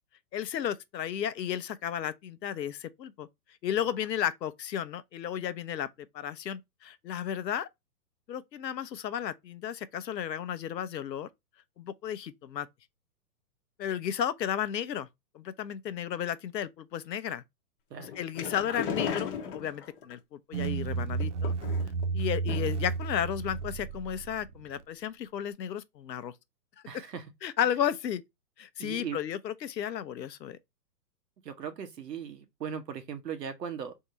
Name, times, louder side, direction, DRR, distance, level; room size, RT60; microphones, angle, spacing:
voice 1, 0.3-3.3 3.6-5.9 6.1-7.7 8.3-11.3 11.8-12.7 13.8-15.1 15.3-17.4 18.2-21.5 22.1-26.3 27.4-28.2 28.6-30.6, left 9 dB, 85° left, 0.8 m, -33 dB
sound 1, 18.0-20.1 21.1-22.0 22.5-22.9 23.2-23.3 23.6-23.7, left 7 dB, 35° left, 1.0 m, -36 dB
sound 2, 20.5-24.8, right 4 dB, 50° right, 0.5 m, -32 dB
voice 2, 26.9-27.2 28.8-29.2 31.4-33.9, right 7 dB, 80° right, 1.3 m, -38 dB
3.6 x 2.8 x 4.3 m
hypercardioid pair, 150°, 49 cm